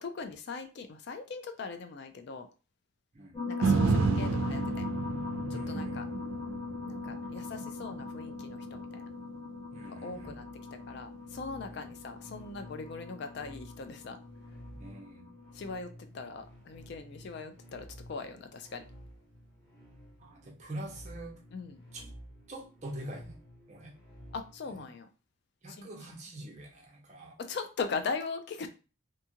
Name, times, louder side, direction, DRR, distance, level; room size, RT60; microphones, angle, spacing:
voice 1, 0.0-2.5 3.5-4.9 5.5-6.0 6.8-9.1 9.9-10.5 10.7-14.2 15.5-18.8 21.5-21.8 24.3-25.1 25.8-25.9 27.4-28.7, left 4 dB, 55° left, 0.3 m, -40 dB
sound 1, 3.3-15.8, left 4 dB, 20° left, 1.2 m, -40 dB
sound 2, 3.6-11.8 12.3-12.4, right 4 dB, 80° right, 0.4 m, -33 dB
voice 2, 5.5-6.2 9.7-10.3 11.7-11.9 14.8-15.3 20.2-21.4 21.9-22.1 22.5-23.3 23.7-23.9 24.7-24.8 25.6-27.4, right 1 dB, 35° right, 0.6 m, -44 dB
sound 3, 10.0-24.9, equal, 5° left, 1.0 m, -52 dB
2.6 x 2.4 x 2.8 m
head